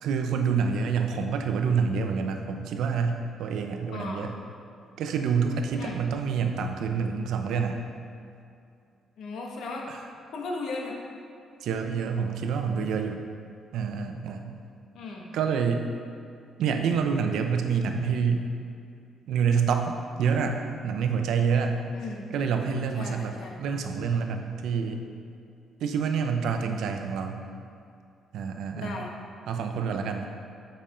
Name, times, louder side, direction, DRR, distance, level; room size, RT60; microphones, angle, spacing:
voice 1, 0.0-4.3 5.0-7.8 11.6-13.2 13.7-14.5 15.3-15.9 16.6-18.5 19.3-21.8 22.3-23.3 23.6-25.0 25.8-27.4 28.3-28.9 29.5-30.3, right 6 dB, 80° right, 5 dB, 0.6 m, -27 dB
voice 2, 3.9-4.3 5.8-6.0 9.2-9.9 10.3-10.9 14.9-15.3 21.9-22.3 23.0-23.6 28.7-29.1, left 3 dB, 70° left, 0 dB, 1.2 m, -36 dB
7.4 x 5.2 x 4.3 m, 2.5 s
cardioid pair, 90°, 0 cm